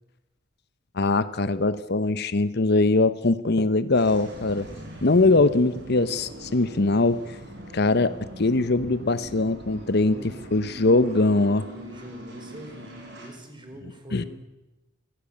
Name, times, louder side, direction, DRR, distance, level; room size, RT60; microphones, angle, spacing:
voice 1, 0.9-4.7 5.0-7.4 7.7-10.2 10.5-11.7 14.1-14.2, left 2 dB, 55° left, 14 dB, 0.9 m, -22 dB
sound 1, 3.9-13.3, right 1 dB, 60° right, 7.2 m, -41 dB
voice 2, 10.8-11.3 11.7-14.3, equal, 25° right, 5 dB, 4.7 m, -43 dB
27.0 x 16.0 x 8.6 m, 1.0 s
head